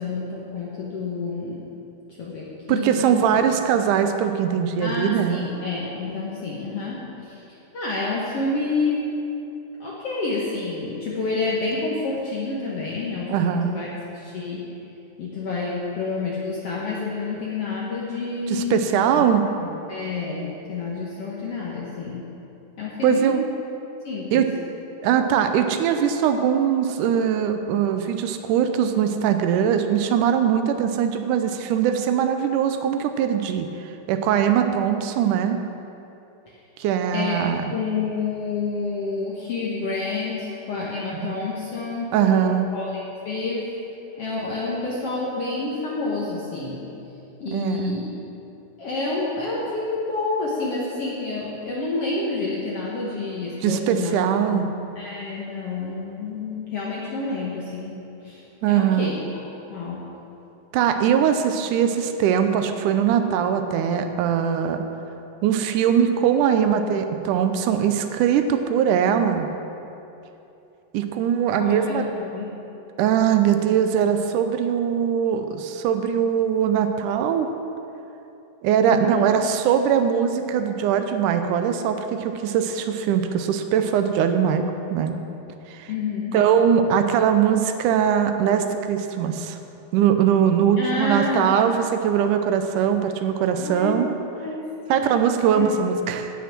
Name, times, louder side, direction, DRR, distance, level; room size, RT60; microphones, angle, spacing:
voice 1, 0.0-1.6 2.2-3.4 4.8-7.4 7.7-9.1 9.8-14.7 15.2-22.3 22.8-23.4 24.0-24.5 37.1-43.7 44.2-46.8 47.4-48.1 48.8-54.2 54.5-54.7 54.9-59.1 59.7-60.0 71.6-72.5 78.9-79.5 85.9-86.4 90.8-91.6 93.6-94.0 94.4-94.7 94.9-95.2 95.5-95.7, left 3 dB, 60° left, -5 dB, 1.6 m, -29 dB
voice 2, 2.7-5.4 13.3-13.8 18.5-19.4 23.0-23.4 24.3-24.5 25.0-35.6 36.8-37.6 41.2-41.3 42.1-42.7 47.5-48.0 53.6-54.7 58.6-59.1 60.7-64.9 65.4-69.5 70.9-72.0 73.0-77.5 78.6-85.2 85.7-85.9 86.3-89.6 89.9-94.1 94.9-96.3, right 8 dB, 80° right, 7 dB, 1.8 m, -21 dB
17.0 x 6.0 x 5.9 m, 2.8 s
omnidirectional pair, 4.3 m